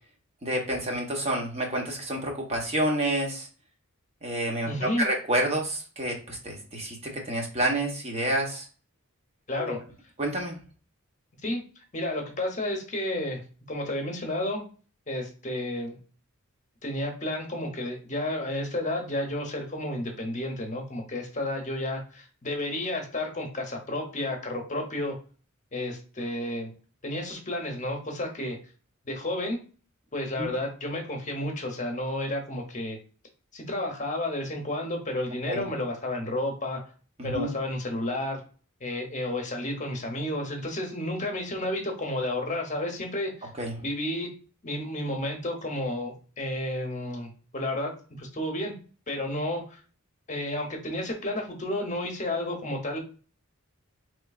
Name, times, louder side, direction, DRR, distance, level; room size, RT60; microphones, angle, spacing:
voice 1, 0.4-3.5 4.2-8.7 9.6-9.8 10.2-10.6 30.4-30.5 35.5-35.6 37.2-37.5 43.6-43.8, right 1 dB, 30° right, 1 dB, 0.9 m, -29 dB
voice 2, 4.7-5.0 9.5-9.8 11.4-13.4 13.7-14.6 15.1-16.0 16.8-25.2 25.7-26.7 27.0-28.6 29.0-29.6 30.1-33.0 33.5-36.8 37.2-38.4 38.8-43.5 43.8-44.3 44.6-48.7 49.1-49.8 50.3-53.0, left 1 dB, 35° left, 2 dB, 0.9 m, -31 dB
4.4 x 3.2 x 2.3 m, 0.38 s
head